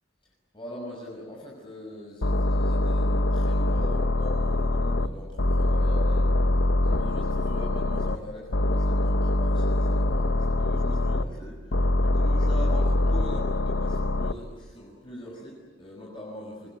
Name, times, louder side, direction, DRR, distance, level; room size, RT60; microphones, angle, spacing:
voice 1, 0.5-16.7, left 1 dB, 25° left, -3 dB, 6.1 m, -42 dB
sound 1, 2.2-5.1 5.4-8.2 8.5-11.2 11.7-14.3, left 1 dB, 70° left, 1.1 m, -24 dB
29.0 x 21.0 x 9.3 m, 1.4 s
head